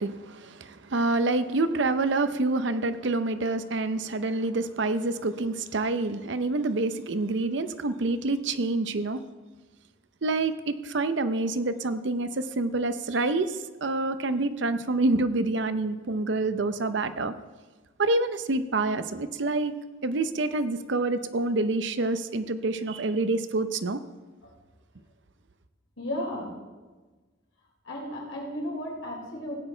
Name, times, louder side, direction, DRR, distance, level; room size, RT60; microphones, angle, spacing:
voice 1, 0.0-9.2 10.2-13.5 13.8-17.3 18.0-19.7 20.0-24.0, right 2 dB, 65° right, 11 dB, 0.7 m, -27 dB
voice 2, 26.0-26.5 27.9-29.6, equal, 80° left, -1 dB, 3.6 m, -34 dB
16.0 x 9.0 x 4.5 m, 1.3 s
head